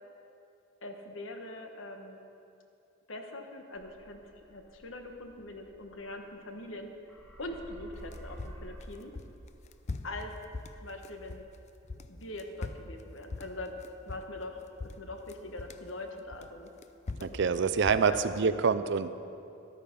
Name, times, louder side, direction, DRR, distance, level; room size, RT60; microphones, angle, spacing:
voice 1, 0.8-2.2 3.1-6.9 7.4-9.1 10.0-10.4 10.8-11.5 12.1-13.8 14.0-16.7 17.2-17.7 18.0-18.5, left 2 dB, 85° left, 4 dB, 1.3 m, -42 dB
sound 1, 3.7-6.8 7.1-11.3, equal, 5° left, 2.6 m, -51 dB
sound 2, 7.9-11.6 11.8-14.5 14.8-15.9 16.3-18.4, left 3 dB, 35° left, 0.5 m, -41 dB
voice 2, 17.2-19.1, right 5 dB, 65° right, 13 dB, 0.5 m, -26 dB
13.5 x 12.0 x 5.3 m, 2.7 s
head